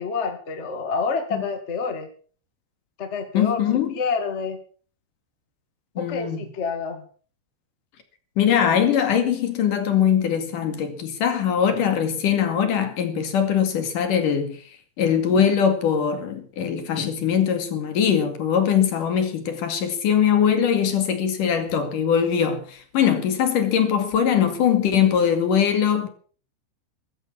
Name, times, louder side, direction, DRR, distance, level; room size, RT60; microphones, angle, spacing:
voice 1, 0.0-2.1 3.0-3.6 3.9-4.6 5.9-7.0, left 5 dB, 70° left, 0.6 m, -28 dB
voice 2, 3.3-3.9 6.0-6.5 8.4-14.6 15.0-26.1, left 8 dB, 55° left, 3.3 m, -21 dB
15.0 x 14.0 x 5.7 m
omnidirectional pair, 5.3 m